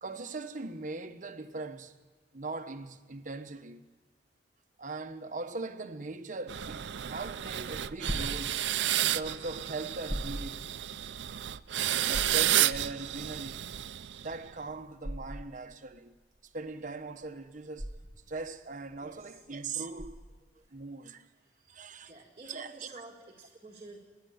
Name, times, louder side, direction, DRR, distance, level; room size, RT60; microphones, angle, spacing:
voice 1, 0.0-1.9 2.3-3.8 4.8-8.6 9.0-10.7 12.0-13.7 14.2-16.1 16.4-18.0 18.3-20.2 20.7-21.3 21.7-22.1 22.4-23.0, right 3 dB, 45° right, 1.0 m, -40 dB
sound 1, 6.5-14.5, right 12 dB, 90° right, 0.5 m, -31 dB
sound 2, 8.1-20.6, equal, 5° left, 1.7 m, -42 dB
voice 2, 19.0-19.4 20.6-20.7 22.0-24.0, right 2 dB, 30° right, 2.1 m, -50 dB
29.0 x 10.5 x 9.5 m
head